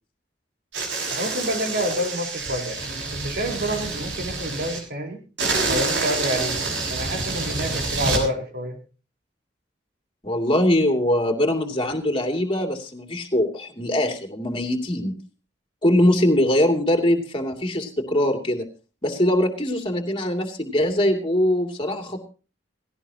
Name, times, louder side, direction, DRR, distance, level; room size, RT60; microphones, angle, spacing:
sound 1, 0.7-4.8 5.4-8.2, right 3 dB, 80° right, 5.9 m, -27 dB
voice 1, 1.1-2.8 3.1-5.2 5.7-6.6 6.9-8.8, equal, 60° right, 4 dB, 4.5 m, -28 dB
voice 2, 10.2-15.2 15.8-18.7 19.0-22.2, left 1 dB, 30° left, 4 dB, 2.8 m, -22 dB
17.0 x 17.0 x 3.0 m, 0.34 s
head